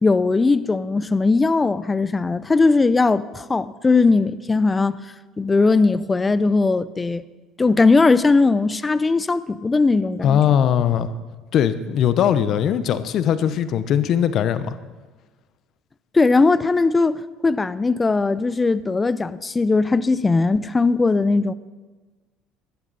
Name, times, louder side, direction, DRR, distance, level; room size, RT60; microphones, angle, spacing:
voice 1, 0.0-5.0 5.4-7.2 7.6-10.4 16.1-21.5, left 3 dB, 20° left, 0.6 m, -19 dB
voice 2, 10.2-11.1 11.5-14.7, left 9 dB, 60° left, 0.8 m, -20 dB
16.5 x 11.5 x 4.1 m
supercardioid pair, 85°, 0 cm